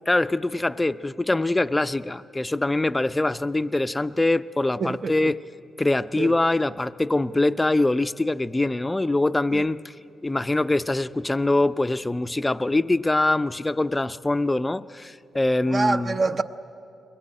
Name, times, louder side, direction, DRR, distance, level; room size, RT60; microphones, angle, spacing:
voice 1, 0.1-5.4 5.8-9.9 10.2-16.2, left 2 dB, 15° left, 0.5 m, -23 dB
voice 2, 4.8-5.3 6.2-6.3 9.5-9.7 15.7-16.4, right 3 dB, 40° right, 0.8 m, -26 dB
22.5 x 19.0 x 9.9 m
cardioid pair, 105°, 0 cm